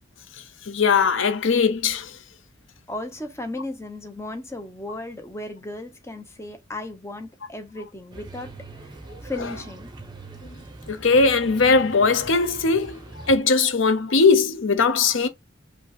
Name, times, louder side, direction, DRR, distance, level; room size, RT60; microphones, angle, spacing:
voice 1, 0.6-2.2 10.4-10.5 10.9-15.3, left 4 dB, 80° left, 0.7 m, -20 dB
voice 2, 2.9-8.5 9.2-9.9, left 2 dB, 15° left, 0.8 m, -35 dB
sound 1, 8.1-13.4, right 2 dB, 20° right, 0.9 m, -42 dB
5.3 x 2.3 x 4.1 m
head